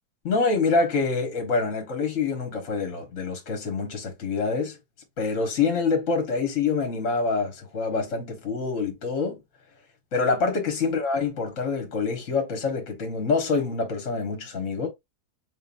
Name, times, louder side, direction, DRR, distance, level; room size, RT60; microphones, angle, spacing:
voice 1, 0.2-4.8 5.2-9.4 10.1-14.9, left 4 dB, 50° left, 1.7 m, -26 dB
4.1 x 3.9 x 2.6 m
omnidirectional pair, 1.7 m